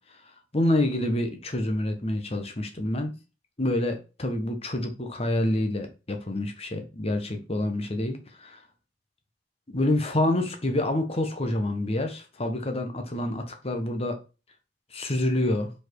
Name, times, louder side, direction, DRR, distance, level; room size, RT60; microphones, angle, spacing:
voice 1, 0.5-3.1 3.6-8.6 9.7-14.2 14.9-15.7, left 1 dB, 35° left, 6 dB, 1.1 m, -27 dB
4.8 x 4.6 x 4.6 m, 0.31 s
head